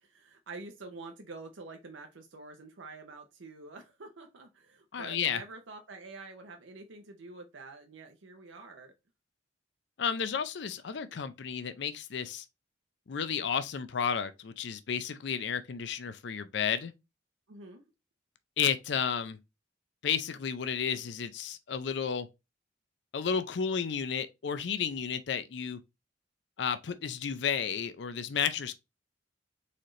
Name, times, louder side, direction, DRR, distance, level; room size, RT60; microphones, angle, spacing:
voice 1, 0.0-8.9 17.5-17.8, right 3 dB, 80° right, 0.7 m, -47 dB
voice 2, 4.9-5.4 10.0-12.4 13.1-16.9 18.6-19.4 20.0-22.3 23.1-25.8 26.6-28.7, left 7 dB, 60° left, 0.5 m, -32 dB
4.2 x 3.2 x 3.7 m
head